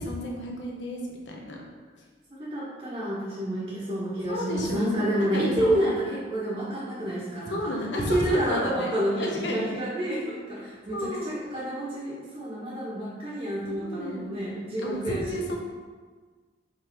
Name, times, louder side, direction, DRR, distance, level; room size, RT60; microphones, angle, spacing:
voice 1, 0.0-1.6 4.3-5.9 7.5-9.7 10.9-11.4 13.7-15.6, left 1 dB, 80° left, -1 dB, 1.0 m, -32 dB
voice 2, 2.4-15.5, right 1 dB, 30° right, -8 dB, 1.5 m, -29 dB
5.3 x 3.8 x 4.9 m, 1.5 s
head